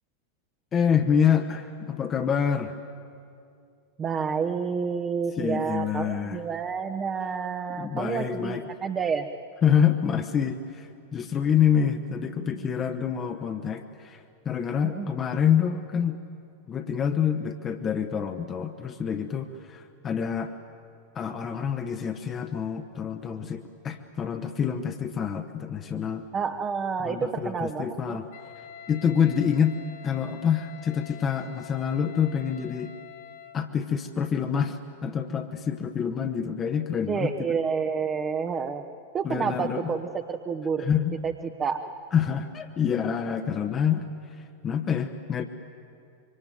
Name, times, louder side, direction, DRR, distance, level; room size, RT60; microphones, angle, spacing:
voice 1, 0.7-2.8 5.4-6.4 7.8-8.6 9.6-16.2 16.7-20.5 21.1-26.2 27.0-28.3 28.9-29.8 30.0-32.9 33.5-37.3 39.2-39.9 40.8-41.2 42.1-45.5, left 7 dB, 25° left, 6 dB, 1.1 m, -27 dB
voice 2, 4.0-9.3 14.8-15.1 26.3-28.2 29.0-29.1 37.1-38.9 39.1-40.9 41.2-41.8, right 6 dB, 25° right, 5 dB, 1.1 m, -29 dB
Wind instrument woodwind instrument, 28.3-33.7, left 10 dB, 55° left, 1.4 m, -46 dB
26.0 x 24.0 x 9.3 m, 2.4 s
figure-of-eight pair, 90°, 0 cm